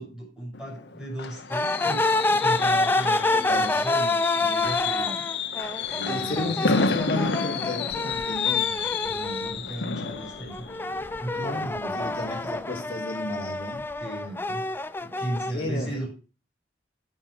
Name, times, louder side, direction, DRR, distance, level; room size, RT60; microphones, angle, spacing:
voice 1, 0.0-5.3 5.9-7.0 9.0-10.7 11.2-12.1 14.0-14.6 15.0-16.1, right 1 dB, 5° right, -3 dB, 6.6 m, -36 dB
Fireworks, 0.5-12.2 12.6-12.9 13.2-13.3, left 5 dB, 80° left, 0.9 m, -30 dB
sound 1, 1.5-9.6 10.0-15.5, left 2 dB, 10° left, 0.5 m, -27 dB
voice 2, 3.3-3.8 6.0-8.8 11.4-13.8 15.5-16.1, left 2 dB, 30° left, -3 dB, 3.5 m, -33 dB
9.1 x 8.0 x 5.6 m, 0.35 s
head